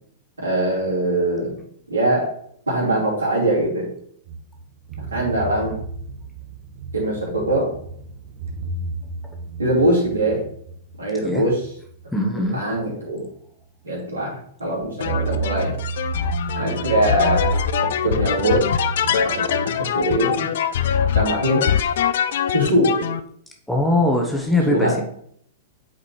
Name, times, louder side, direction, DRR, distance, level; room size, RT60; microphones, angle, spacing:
voice 1, 0.4-1.6 1.9-2.3 2.7-3.9 5.0-5.8 6.9-7.7 9.6-10.4 11.0-11.6 12.5-13.2 13.8-15.7 16.5-17.5 17.8-18.6 19.0-20.5 21.1-21.7 22.5-23.1 24.7-25.0, right 1 dB, 80° right, -4 dB, 2.5 m, -22 dB
sound 1, 4.2-12.8 13.2-13.3 15.0-19.7, right 5 dB, 50° right, 0.9 m, -31 dB
voice 2, 12.1-12.6 23.7-25.0, left 1 dB, 5° left, 1 dB, 1.0 m, -21 dB
sound 2, 15.0-23.2, left 9 dB, 60° left, 0.4 m, -23 dB
8.3 x 4.0 x 3.1 m, 0.64 s
figure-of-eight pair, 105°, 0 cm